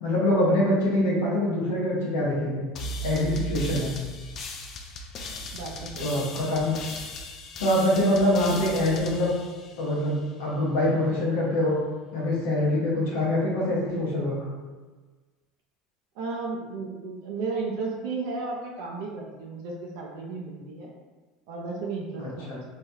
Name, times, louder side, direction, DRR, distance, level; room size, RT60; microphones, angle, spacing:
voice 1, 0.0-2.6 3.0-3.9 6.0-6.7 7.6-9.3 9.8-11.8 12.1-14.3 22.2-22.6, left 1 dB, 75° left, -5 dB, 0.7 m, -24 dB
sound 1, 2.8-10.3, equal, 50° left, 0.4 m, -37 dB
voice 2, 3.6-4.0 5.5-6.3 16.1-20.9 21.5-22.6, right 4 dB, 70° right, -1 dB, 0.4 m, -34 dB
3.3 x 2.2 x 2.7 m, 1.3 s
hypercardioid pair, 80°, 0 cm